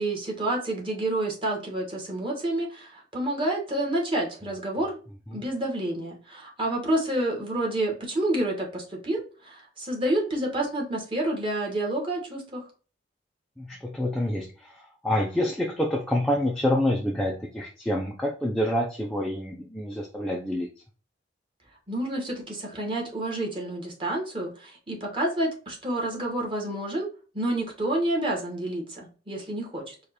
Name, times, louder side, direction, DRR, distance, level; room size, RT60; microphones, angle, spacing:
voice 1, 0.0-5.0 5.3-12.6 21.9-27.1 27.3-29.9, right 1 dB, 25° right, -1 dB, 1.5 m, -29 dB
voice 2, 13.6-20.7, left 1 dB, 5° left, -2 dB, 0.5 m, -27 dB
4.9 x 2.5 x 4.3 m, 0.37 s
head